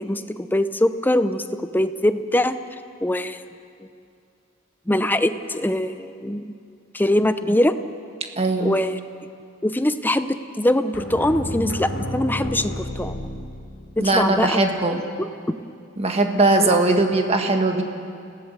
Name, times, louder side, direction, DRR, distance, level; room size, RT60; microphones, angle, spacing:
voice 1, 0.0-2.6 3.0-3.4 4.9-6.6 6.9-7.7 8.6-9.0 9.6-13.2 14.0-14.8 15.2-15.3 16.4-16.8, left 1 dB, 10° left, 10 dB, 0.7 m, -22 dB
voice 2, 8.4-8.8 14.0-15.0 16.0-17.8, right 2 dB, 30° right, 4 dB, 1.8 m, -20 dB
sound 1, 10.9-14.1, equal, 75° left, 3.0 m, -31 dB
29.0 x 17.5 x 6.9 m, 2.4 s
head